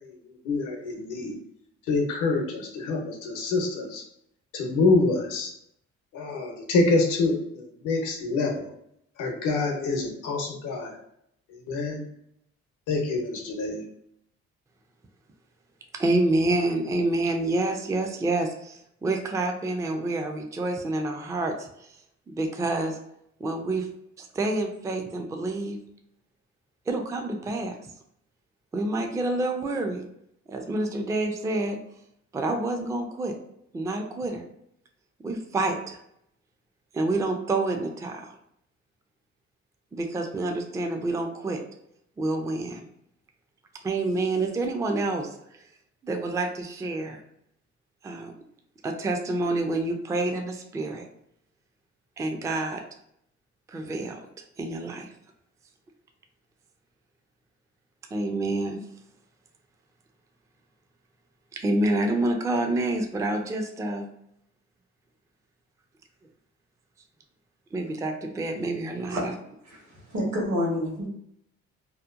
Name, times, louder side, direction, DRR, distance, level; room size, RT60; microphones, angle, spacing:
voice 1, 0.4-1.4 1.9-4.0 4.5-5.5 6.1-8.7 9.2-11.0 11.5-12.0 12.9-13.8, left 3 dB, 90° left, 1 dB, 0.7 m, -26 dB
voice 2, 16.0-21.9 22.3-23.0 23.4-23.9 24.2-25.8 26.9-27.8 28.7-30.1 30.5-31.8 32.3-33.4 33.7-34.4 35.2-36.0 36.9-38.3 39.9-41.6 42.2-42.8 43.8-45.6 46.0-47.2 48.0-48.3 48.8-51.0 52.2-52.8 53.7-54.2 54.6-55.1 58.1-58.8 61.5-64.1 67.7-69.3, right 2 dB, 10° right, 4 dB, 0.3 m, -28 dB
voice 3, 69.6-71.1, left 1 dB, 65° right, -2 dB, 1.2 m, -28 dB
2.8 x 2.1 x 2.4 m, 0.73 s
cardioid pair, 90°, 30 cm